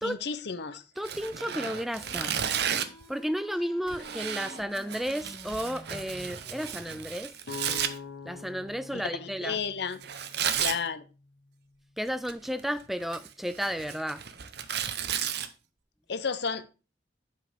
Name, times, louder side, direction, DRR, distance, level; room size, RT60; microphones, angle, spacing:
voice 1, 0.0-0.8 8.9-10.0 10.6-11.0 16.1-16.7, left 5 dB, 65° left, 0.8 m, -32 dB
voice 2, 1.0-2.3 3.1-7.3 7.7-7.8 8.3-9.6 12.0-14.2, equal, ahead, 0.3 m, -33 dB
Tearing, 1.0-3.0 3.9-7.9 10.0-10.8 12.1-12.6 13.0-15.5, right 9 dB, 65° right, 0.8 m, -33 dB
sound 1, 1.2-7.2, left 1 dB, 15° left, 1.2 m, -50 dB
sound 2, 7.4-11.3, left 5 dB, 85° left, 1.1 m, -44 dB
7.6 x 5.5 x 5.0 m
head